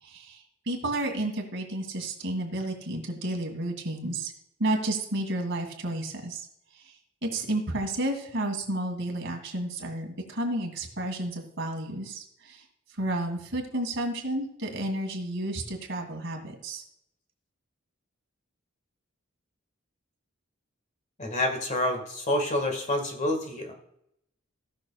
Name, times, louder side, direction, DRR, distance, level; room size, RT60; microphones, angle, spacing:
voice 1, 0.0-4.3 4.6-6.5 6.7-6.9 7.2-12.6 12.9-16.8, right 1 dB, 60° right, 2 dB, 2.2 m, -31 dB
voice 2, 21.2-23.7, left 1 dB, 35° left, 4 dB, 1.6 m, -28 dB
17.5 x 6.4 x 2.4 m, 0.77 s
head